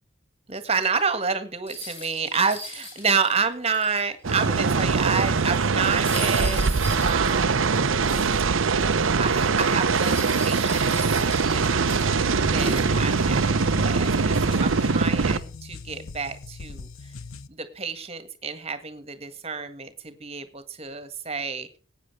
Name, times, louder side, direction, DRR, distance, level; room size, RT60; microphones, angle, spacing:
voice 1, 0.5-6.7 7.0-7.7 9.2-11.9 12.4-17.1 17.5-21.8, right 5 dB, 30° right, 10 dB, 1.7 m, -29 dB
sound 1, 1.7-4.2 4.7-4.8 5.1-8.5 9.8-12.1 12.6-13.5 14.0-14.7, left 2 dB, 25° left, 7.1 m, -39 dB
sound 2, 4.2-15.4, right 4 dB, 75° right, 0.8 m, -22 dB
sound 3, 11.8-17.5, left 4 dB, 90° left, 0.8 m, -39 dB
19.0 x 9.2 x 3.3 m, 0.37 s
head